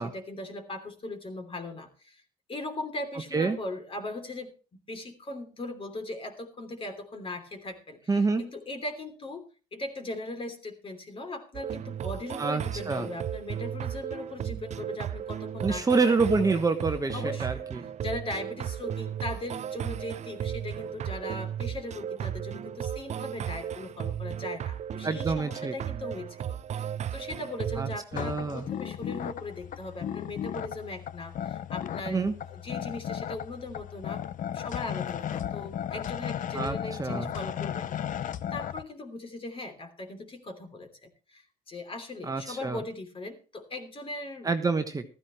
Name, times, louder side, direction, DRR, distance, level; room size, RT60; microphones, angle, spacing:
voice 1, 0.0-2.2 2.5-9.4 9.7-16.6 17.1-17.6 18.0-34.2 34.5-44.5, left 2 dB, 30° left, 6 dB, 3.1 m, -39 dB
voice 2, 8.1-8.5 12.4-13.1 15.6-17.8 25.0-25.7 27.8-28.7 32.1-32.3 36.5-37.3 42.2-42.8 44.4-45.0, right 4 dB, 20° right, 6 dB, 1.3 m, -27 dB
sound 1, 11.5-28.0, right 9 dB, 45° right, 0.6 m, -35 dB
sound 2, 28.1-38.8, left 10 dB, 50° left, 0.7 m, -35 dB
15.0 x 14.0 x 3.1 m, 0.35 s
cardioid pair, 110°, 17 cm